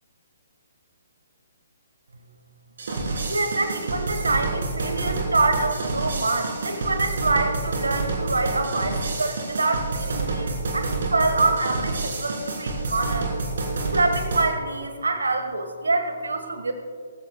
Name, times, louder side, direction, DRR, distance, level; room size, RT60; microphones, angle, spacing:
sound 1, 2.8-14.5, right 3 dB, 55° right, 3.2 m, -28 dB
voice 1, 3.3-13.3 13.9-16.7, right 3 dB, 70° right, 6 dB, 1.4 m, -25 dB
19.5 x 15.5 x 2.2 m, 2.1 s
figure-of-eight pair, 130°, 0 cm